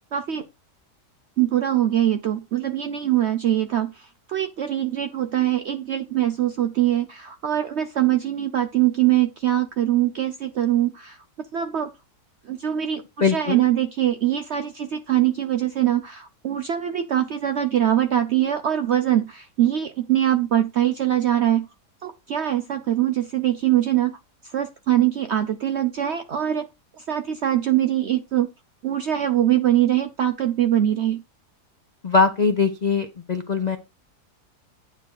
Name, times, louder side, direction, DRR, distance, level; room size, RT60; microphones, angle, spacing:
voice 1, 0.1-0.4 1.4-11.2 11.5-11.9 12.5-21.7 22.0-26.7 27.0-28.5 28.8-31.2, right 12 dB, 70° right, 0.6 m, -23 dB
voice 2, 13.2-13.6 32.0-33.8, left 5 dB, 70° left, 0.4 m, -21 dB
9.1 x 3.4 x 6.4 m
omnidirectional pair, 1.7 m